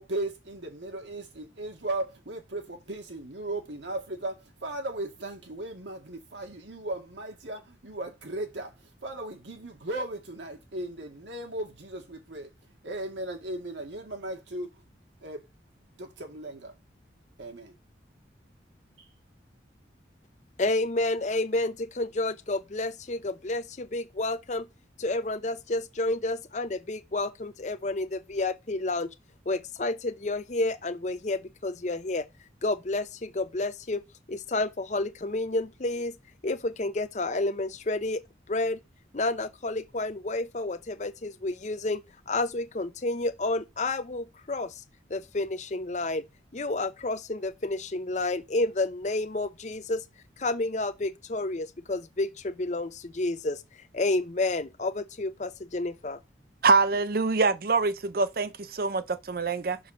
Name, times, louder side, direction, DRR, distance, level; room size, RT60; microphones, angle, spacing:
voice 1, 0.0-14.8 15.2-15.4 16.0-16.7 17.4-17.8 19.0-19.1, right 2 dB, 80° right, 2.0 m, -37 dB
voice 2, 20.6-24.7 25.0-29.1 29.5-32.3 32.6-34.0 34.3-36.2 36.4-38.8 39.1-44.8 45.1-46.2 46.5-50.0 50.4-53.6 53.9-56.2, left 2 dB, 40° left, 0.7 m, -30 dB
voice 3, 56.6-59.8, right 4 dB, 55° right, 0.6 m, -25 dB
6.6 x 4.8 x 4.4 m
head